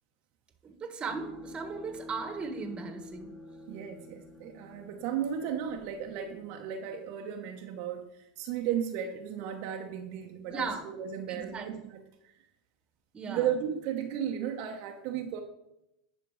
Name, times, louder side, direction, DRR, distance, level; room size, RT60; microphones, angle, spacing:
voice 1, 0.6-3.3 10.5-10.9 11.3-11.7 13.1-13.5, right 4 dB, 25° right, 7 dB, 1.6 m, -37 dB
sound 1, 1.1-7.3, left 2 dB, 25° left, 1.6 m, -48 dB
voice 2, 3.7-12.0 12.2-12.3 13.3-15.4, right 9 dB, 55° right, 2 dB, 1.0 m, -35 dB
10.5 x 5.1 x 4.8 m, 0.85 s
hypercardioid pair, 100°, 4 cm